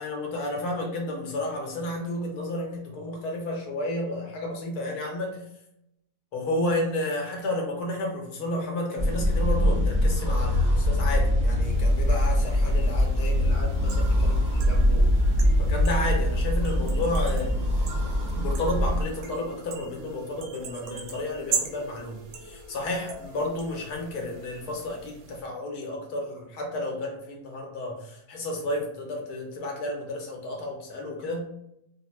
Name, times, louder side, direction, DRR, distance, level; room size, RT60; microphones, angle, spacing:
voice 1, 0.0-5.4 6.3-15.1 15.6-17.6 18.4-31.5, left 1 dB, 80° left, 0 dB, 1.3 m, -32 dB
sound 1, 9.0-19.0, left 1 dB, 35° right, 0.6 m, -23 dB
sound 2, 11.6-25.4, right 5 dB, 65° right, 0.8 m, -40 dB
2.9 x 2.1 x 3.0 m, 0.79 s
omnidirectional pair, 1.6 m